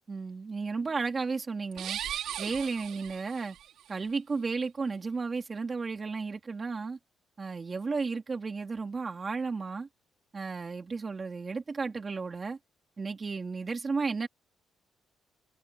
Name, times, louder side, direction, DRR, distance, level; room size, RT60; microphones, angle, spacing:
voice 1, 0.1-2.0 2.4-3.6 3.9-7.0 7.4-9.9 10.3-12.6 13.0-14.3, right 4 dB, 25° right, 3.1 m, -33 dB
sound 1, 1.7-3.7, right 11 dB, 65° right, 5.3 m, -38 dB
cardioid pair, 170°, 0 cm